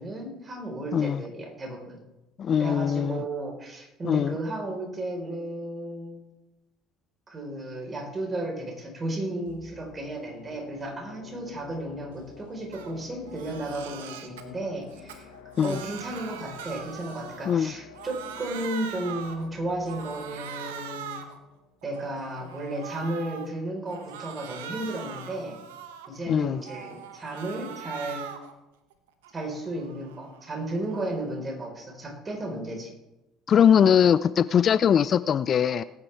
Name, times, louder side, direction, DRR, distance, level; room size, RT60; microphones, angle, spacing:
voice 1, 0.0-2.0 2.6-6.2 7.3-15.3 15.6-21.2 21.8-25.6 26.1-28.3 29.3-32.9, right 1 dB, 30° right, 1 dB, 4.3 m, -34 dB
voice 2, 2.4-3.2 4.0-4.3 15.6-15.8 17.5-17.7 26.3-26.6 33.5-35.8, left 8 dB, 45° left, 16 dB, 0.4 m, -21 dB
sound 1, 9.5-22.5 22.9-23.0, left 7 dB, 85° left, 1.6 m, -50 dB
Crying sobbing, 12.7-12.9 13.3-14.4 14.9-17.7 17.9-19.5 19.9-21.4 21.8-23.5 23.9-26.2 26.6-28.5 28.9-31.3, right 8 dB, 80° right, 1.0 m, -41 dB
20.0 x 9.6 x 3.4 m, 1.0 s
hypercardioid pair, 60°, 0 cm